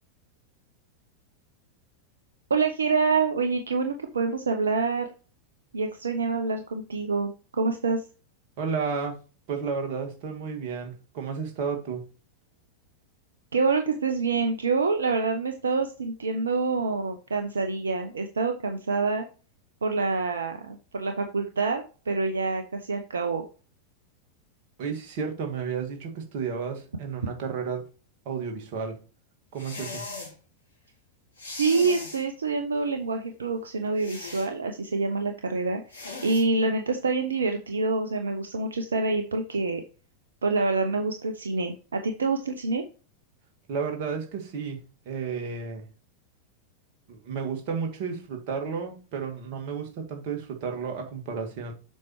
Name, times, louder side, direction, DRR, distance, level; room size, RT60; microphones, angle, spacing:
voice 1, 2.5-5.1 5.7-8.1 13.5-19.2 19.8-23.4 31.5-35.8 36.2-39.8 40.4-42.8, right 4 dB, 70° right, 0.7 m, -26 dB
voice 2, 8.6-9.2 9.5-12.1 24.8-27.9 28.3-29.0 29.5-30.1 43.7-45.8 47.1-51.7, right 6 dB, 45° right, 1.9 m, -32 dB
sound 1, 29.6-30.3 31.4-32.2 34.0-34.5 35.9-36.4, left 3 dB, 75° left, 2.4 m, -38 dB
7.5 x 5.5 x 3.1 m
figure-of-eight pair, 90°, 0 cm